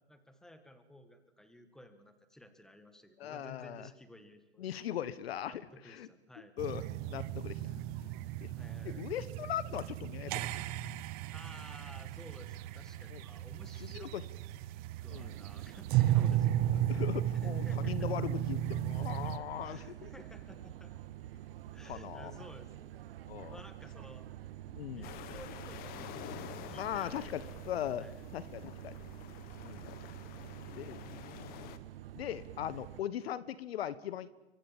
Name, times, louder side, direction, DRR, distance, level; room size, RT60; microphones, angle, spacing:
voice 1, 0.1-4.8 5.5-6.5 8.5-9.1 11.3-14.1 15.0-16.6 17.4-18.1 19.3-20.9 21.7-22.9 23.5-24.3 24.9-27.4 28.0-28.3, left 1 dB, ahead, 9 dB, 1.8 m, -55 dB
voice 2, 3.2-3.9 4.6-6.1 6.6-7.7 8.4-8.5 8.8-10.5 13.1-13.2 13.8-14.2 15.1-15.4 16.9-20.1 21.8-22.4 23.3-23.6 24.7-25.1 26.8-29.0 29.6-29.9 30.7-31.7 32.1-34.3, left 11 dB, 60° left, 17 dB, 1.4 m, -40 dB
sound 1, 6.6-19.4, right 12 dB, 25° right, 0.9 m, -34 dB
sound 2, 15.1-33.0, right 13 dB, 55° right, 1.4 m, -48 dB
sound 3, 25.0-31.8, left 11 dB, 25° left, 1.5 m, -49 dB
27.0 x 24.5 x 7.4 m, 1.0 s
hypercardioid pair, 145°, 34 cm